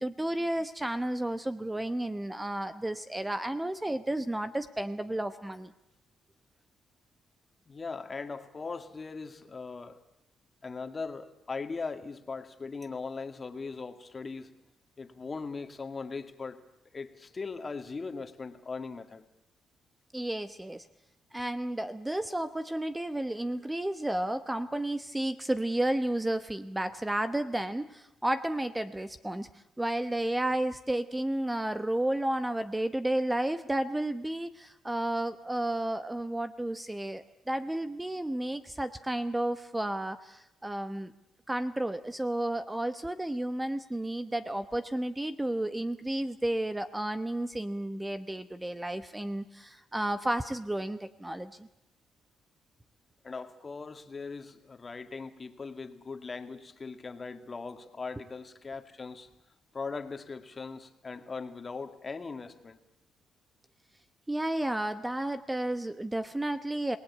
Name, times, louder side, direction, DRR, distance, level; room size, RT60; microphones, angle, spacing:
voice 1, 0.0-5.7 20.1-20.9 21.3-29.5 29.8-41.1 41.5-51.7 64.3-67.0, right 1 dB, 10° right, 11 dB, 1.0 m, -32 dB
voice 2, 7.7-10.0 10.6-14.5 15.0-16.6 16.9-19.2 53.2-59.3 59.7-62.8, left 4 dB, 30° left, 8 dB, 2.1 m, -39 dB
27.5 x 19.0 x 8.5 m, 0.85 s
cardioid pair, 95°, 0 cm